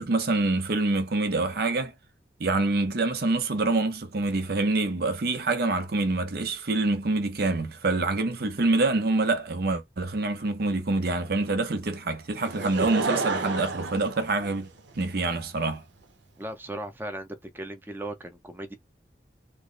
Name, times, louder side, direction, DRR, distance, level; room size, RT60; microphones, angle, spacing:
voice 1, 0.0-1.9 2.4-14.7 15.0-15.8, right 2 dB, 60° right, 0.6 m, -26 dB
Laughter / Crowd, 12.4-15.0 15.7-15.8, right 3 dB, 90° right, 0.8 m, -31 dB
voice 2, 16.4-18.7, right 1 dB, 10° right, 0.6 m, -37 dB
3.2 x 2.0 x 3.8 m
head